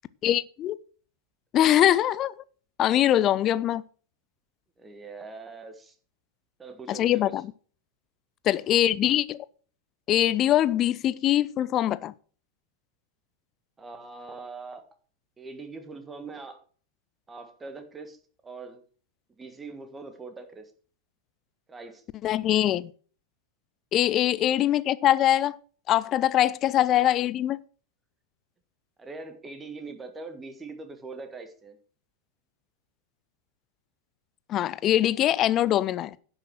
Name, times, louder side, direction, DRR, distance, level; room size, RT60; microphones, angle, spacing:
voice 1, 0.2-0.8 1.5-2.3 2.8-3.8 6.9-7.4 8.4-9.4 10.1-12.1 22.2-22.9 23.9-25.6 25.9-27.6 34.5-36.2, left 12 dB, 30° left, 0.4 m, -23 dB
voice 2, 4.8-5.9 6.6-7.4 13.8-14.8 15.4-16.6 17.3-18.8 19.3-20.7 21.7-22.0 24.5-24.7 29.0-31.8, right 3 dB, 15° right, 1.6 m, -42 dB
10.5 x 6.2 x 6.2 m
figure-of-eight pair, 90°, 0 cm